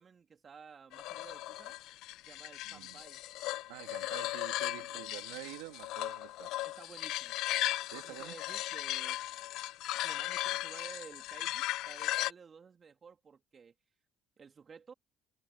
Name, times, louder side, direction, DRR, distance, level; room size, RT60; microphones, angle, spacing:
voice 1, 0.0-1.8 2.3-3.2 4.8-5.1 6.6-7.4 7.9-9.2 10.0-13.7 14.4-14.9, right 6 dB, 40° right, 2.8 m, -53 dB
sound 1, 0.9-12.3, left 16 dB, 70° left, 0.7 m, -37 dB
voice 2, 2.7-3.0 3.7-6.6 7.9-8.4, right 21 dB, 80° right, 2.0 m, -47 dB
hypercardioid pair, 70°, 0 cm